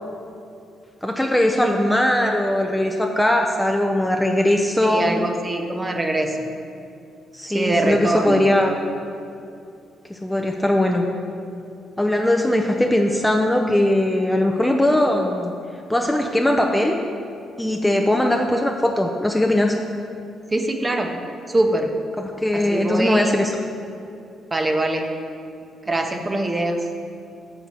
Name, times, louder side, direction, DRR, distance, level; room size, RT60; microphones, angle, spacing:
voice 1, 1.0-5.1 7.3-8.8 10.1-11.1 12.0-15.5 15.9-17.0 17.6-19.8 22.4-23.5, left 1 dB, 5° left, 2 dB, 0.5 m, -20 dB
voice 2, 4.8-6.5 7.5-8.4 20.5-21.1 21.5-21.9 22.5-23.4 24.5-25.0 25.9-26.8, right 2 dB, 25° right, 4 dB, 0.7 m, -23 dB
5.7 x 4.8 x 6.6 m, 2.5 s
cardioid pair, 90°, 0 cm